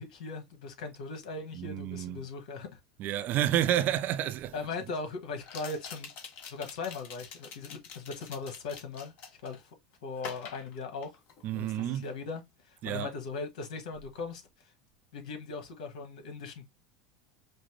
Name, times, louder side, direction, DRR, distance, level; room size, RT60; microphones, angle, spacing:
voice 1, 0.0-2.8 4.5-6.1 6.5-9.1 9.4-9.6 10.0-11.1 11.5-14.4 15.1-16.7, left 4 dB, 75° left, 1.5 m, -39 dB
voice 2, 1.5-2.3 3.0-4.5 11.4-12.1 12.8-13.1, right 12 dB, 45° right, 0.5 m, -30 dB
sound 1, 3.8-3.9 5.4-9.6 10.2-11.5 11.8-12.1, left 6 dB, 50° left, 1.4 m, -46 dB
5.2 x 2.2 x 3.2 m
hypercardioid pair, 100°, 4 cm